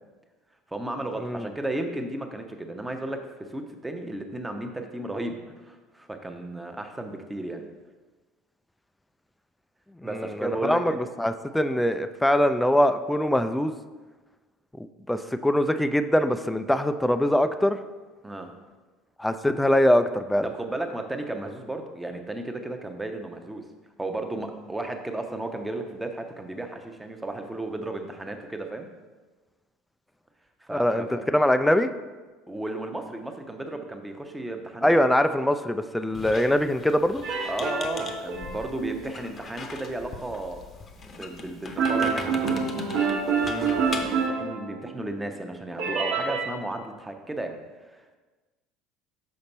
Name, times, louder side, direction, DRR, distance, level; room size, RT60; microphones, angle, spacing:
voice 1, 0.7-3.2 3.5-7.6 10.0-11.0 18.2-18.5 20.4-23.6 24.0-28.9 30.6-31.3 32.5-34.9 37.4-40.6 41.1-42.6 43.9-47.6 47.9-48.2, right 2 dB, 10° right, 5 dB, 0.8 m, -34 dB
voice 2, 10.1-13.7 15.1-17.8 19.2-20.5 30.7-31.0 31.3-31.9 34.8-37.2 43.4-43.8, left 1 dB, 5° left, 10 dB, 0.3 m, -23 dB
Squeak, 36.1-44.3, left 3 dB, 30° left, 0.8 m, -40 dB
sound 1, 37.2-39.1 41.8-45.1 45.8-46.5, right 5 dB, 55° right, 1.1 m, -27 dB
6.5 x 5.1 x 4.1 m, 1.3 s
figure-of-eight pair, 65°, 0 cm